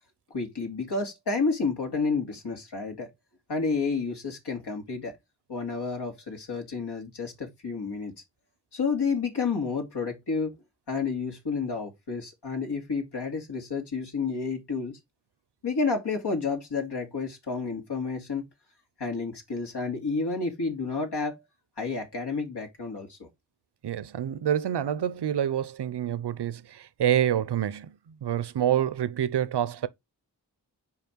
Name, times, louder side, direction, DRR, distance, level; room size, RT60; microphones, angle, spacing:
voice 1, 0.3-3.1 3.5-5.2 5.5-8.1 8.7-10.5 10.9-15.0 15.6-18.5 19.0-21.3 21.8-23.3, left 4 dB, 65° left, 2.9 m, -30 dB
voice 2, 23.8-29.9, right 10 dB, 65° right, 0.9 m, -27 dB
5.7 x 4.6 x 4.6 m
supercardioid pair, 40°, 43 cm